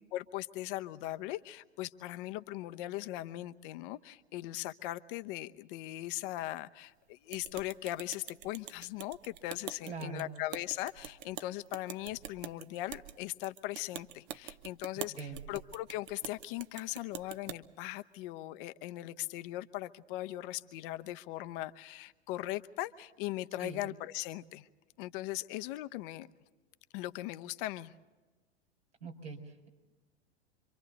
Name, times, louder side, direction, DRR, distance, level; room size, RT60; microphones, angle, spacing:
voice 1, 0.1-24.7 25.0-26.3 26.9-27.9, left 16 dB, 50° left, 11 dB, 0.9 m, -39 dB
sound 1, 7.3-17.6, right 11 dB, 50° right, 1.0 m, -46 dB
voice 2, 9.8-10.3 14.9-15.5 23.6-23.8 29.0-29.7, right 4 dB, 90° right, 0 dB, 4.5 m, -43 dB
27.0 x 24.5 x 4.1 m, 1.2 s
figure-of-eight pair, 90°, 33 cm